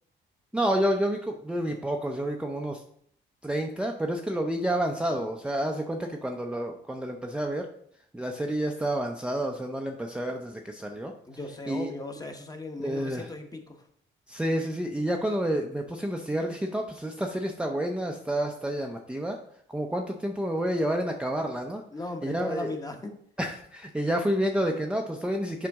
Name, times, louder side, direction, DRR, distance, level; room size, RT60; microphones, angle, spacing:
voice 1, 0.5-2.8 3.4-7.7 8.1-11.1 11.7-11.9 12.8-13.3 14.3-19.4 19.7-21.8 22.2-22.8 23.4-25.7, right 1 dB, 5° right, 2 dB, 0.6 m, -29 dB
voice 2, 11.2-13.9 21.9-23.2, left 2 dB, 20° left, 5 dB, 1.1 m, -38 dB
7.6 x 5.1 x 3.5 m, 0.66 s
cardioid pair, 90°, 20 cm